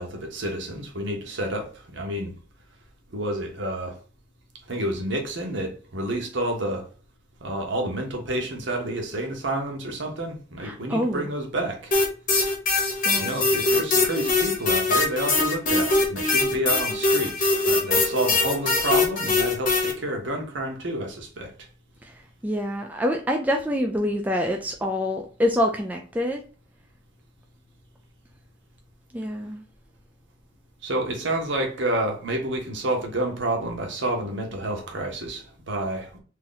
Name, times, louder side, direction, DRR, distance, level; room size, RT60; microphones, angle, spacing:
voice 1, 0.0-2.3 3.1-4.0 4.7-6.9 7.4-12.0 13.1-21.7 30.8-36.2, right 1 dB, 65° right, 1.0 m, -29 dB
voice 2, 10.6-11.3 13.0-13.4 22.0-26.4 29.1-29.6, equal, 10° right, 0.3 m, -26 dB
sound 1, 11.9-19.9, left 3 dB, 40° left, 0.9 m, -22 dB
2.8 x 2.6 x 3.9 m
head